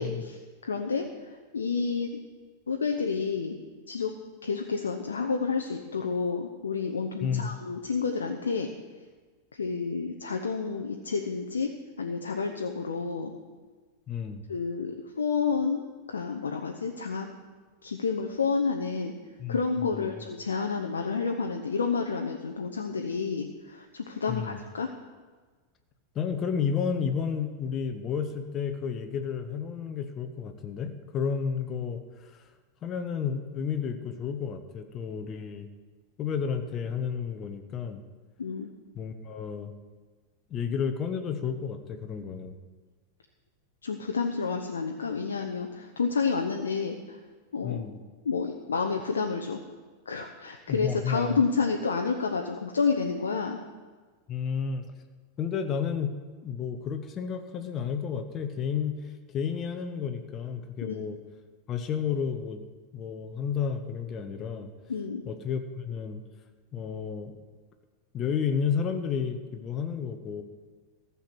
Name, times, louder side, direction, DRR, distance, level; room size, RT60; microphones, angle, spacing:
voice 1, 0.0-2.2 2.7-3.6 3.9-4.1 4.4-8.7 9.5-11.7 12.0-13.3 14.5-17.3 17.8-19.1 19.5-24.9 38.4-38.7 43.8-47.2 47.5-47.8 48.2-49.6 50.1-53.6 60.8-61.0 64.9-65.2, left 5 dB, 70° left, 4 dB, 0.8 m, -30 dB
voice 2, 7.2-7.5 14.1-14.4 19.4-19.6 19.9-20.3 24.3-24.6 26.1-32.5 32.8-35.7 36.2-38.0 38.9-39.7 40.5-42.5 47.6-48.0 50.7-51.4 54.3-54.9 55.4-56.1 56.4-61.2 61.7-64.7 65.2-66.2 66.7-67.4 68.1-70.4, left 7 dB, 30° left, 7 dB, 1.1 m, -31 dB
14.5 x 7.2 x 6.3 m, 1.4 s
figure-of-eight pair, 90°, 0 cm